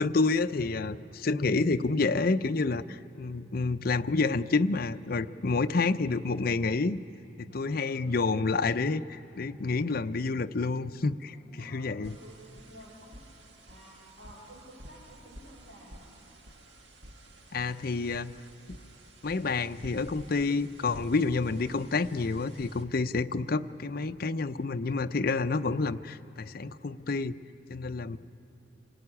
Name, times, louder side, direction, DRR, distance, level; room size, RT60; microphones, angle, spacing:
voice 1, 0.0-7.0 7.4-12.1 17.5-18.3 18.7-18.8 19.2-27.3 27.7-28.2, left 3 dB, 55° left, 9 dB, 0.6 m, -29 dB
voice 2, 3.9-4.2 5.4-5.9 7.5-8.0 11.3-13.2 13.6-16.2 27.9-28.2, equal, 65° right, -5 dB, 5.5 m, -53 dB
sound 1, 12.0-22.8, right 1 dB, 80° right, 1.7 m, -52 dB
27.0 x 18.0 x 9.9 m, 2.9 s
head